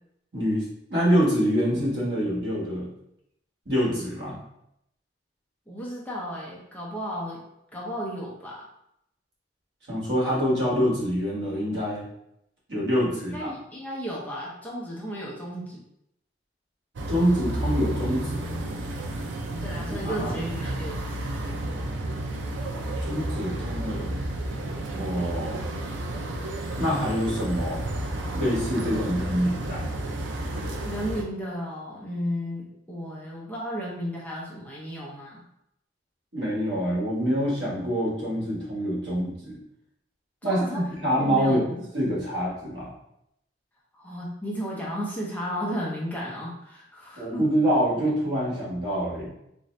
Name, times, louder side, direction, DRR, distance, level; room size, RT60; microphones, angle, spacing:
voice 1, 0.3-0.6 0.9-2.9 3.6-4.4 9.9-12.0 12.7-13.5 17.1-18.4 19.9-20.3 23.1-24.1 24.9-25.6 26.7-27.8 28.3-29.9 36.3-39.6 40.4-41.6 41.9-42.9 47.2-49.3, equal, 70° right, -5 dB, 1.4 m, -26 dB
voice 2, 5.7-7.4 7.7-8.7 13.3-15.8 19.6-21.0 30.8-35.4 40.4-40.8 41.2-41.8 43.9-47.4, equal, 10° left, -5 dB, 0.6 m, -34 dB
sound 1, 17.0-31.2, right 1 dB, 85° right, 0.5 m, -31 dB
3.8 x 2.7 x 3.2 m, 0.79 s
head